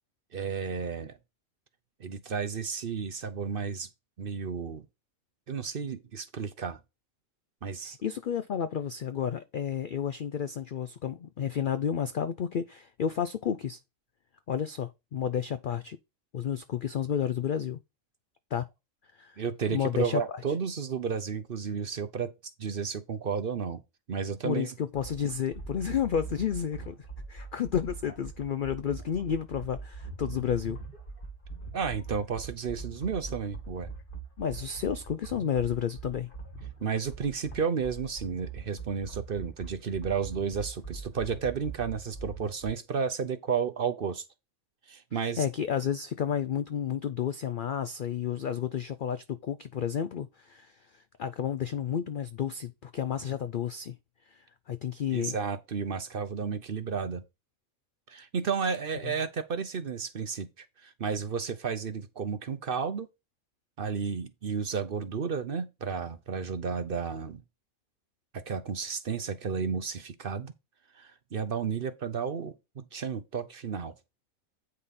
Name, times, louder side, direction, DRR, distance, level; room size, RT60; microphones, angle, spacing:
voice 1, 0.3-1.2 2.0-3.9 4.2-4.8 5.5-6.8 7.6-8.0 19.4-22.3 22.6-23.8 24.1-24.7 31.7-33.9 36.8-44.2 44.9-45.5 55.1-57.2 58.1-63.1 63.8-67.4 68.3-70.5 70.9-73.9, right 6 dB, 50° right, 0.8 m, -32 dB
voice 2, 7.8-13.8 14.5-16.0 16.3-17.8 18.5-18.7 19.1-19.4 19.7-20.2 24.4-27.0 27.3-30.8 34.4-36.3 45.1-54.0 54.3-55.4, left 8 dB, 80° left, 0.4 m, -31 dB
sound 1, 24.9-42.7, right 4 dB, 40° left, 1.7 m, -42 dB
8.7 x 5.5 x 4.1 m
omnidirectional pair, 1.5 m